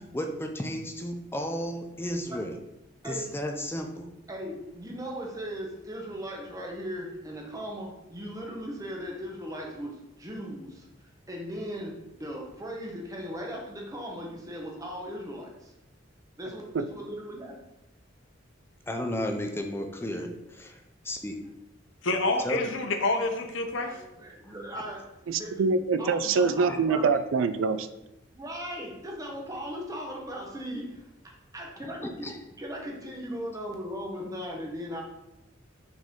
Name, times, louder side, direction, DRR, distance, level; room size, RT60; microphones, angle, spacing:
voice 1, 0.1-2.6 3.0-4.1 18.9-21.4 22.4-22.6 26.7-26.8 32.0-32.4, equal, 10° left, 4 dB, 0.6 m, -33 dB
voice 2, 4.3-10.9 11.3-15.7 16.4-17.6 23.8-25.6 26.0-27.1 28.3-31.1 31.5-32.1 32.6-35.0, equal, 20° right, -1 dB, 1.1 m, -38 dB
voice 3, 22.0-23.9, left 2 dB, 70° left, 5 dB, 0.8 m, -27 dB
voice 4, 25.3-27.9, right 4 dB, 80° right, 12 dB, 0.4 m, -25 dB
6.0 x 4.4 x 3.7 m, 0.88 s
head